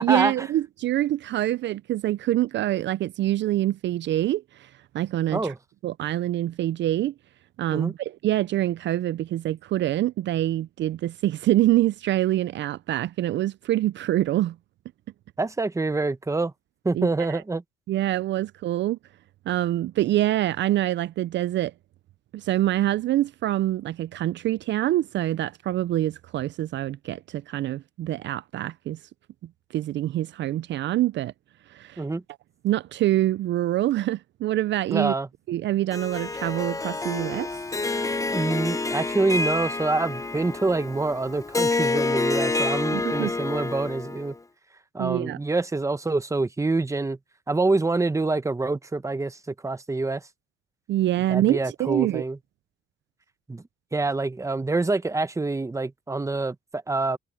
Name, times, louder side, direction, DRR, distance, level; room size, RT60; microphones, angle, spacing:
voice 1, 0.0-4.7 4.9-5.5 5.8-7.1 7.6-14.6 16.9-17.4 17.9-19.0 19.5-21.7 22.3-29.0 29.7-31.3 31.7-32.0 32.6-35.1 35.5-37.5 42.9-43.3 45.0-45.4 50.9-52.2, right 14 dB, 65° right, 0.4 m, -25 dB
voice 2, 15.4-16.5 16.8-17.6 32.0-32.2 34.9-35.3 38.2-44.3 44.9-47.2 47.5-50.2 51.3-52.4 53.5-53.6 53.9-57.2, right 3 dB, 15° right, 1.0 m, -26 dB
Harp, 35.9-44.3, left 3 dB, 15° left, 0.8 m, -28 dB
cardioid pair, 90°, 20 cm